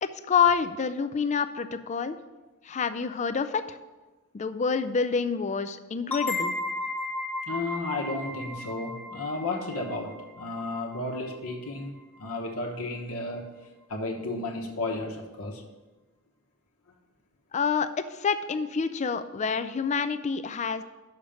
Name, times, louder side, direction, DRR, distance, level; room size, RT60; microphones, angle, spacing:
voice 1, 0.0-2.2 2.7-3.6 4.3-6.5 17.5-20.8, left 6 dB, 30° left, 11 dB, 0.4 m, -27 dB
sound 1, 6.1-11.5, left 2 dB, 5° left, 0.8 m, -35 dB
voice 2, 7.5-13.5 13.9-15.6, left 2 dB, 70° left, 1 dB, 1.1 m, -33 dB
6.6 x 5.1 x 7.0 m, 1.2 s
head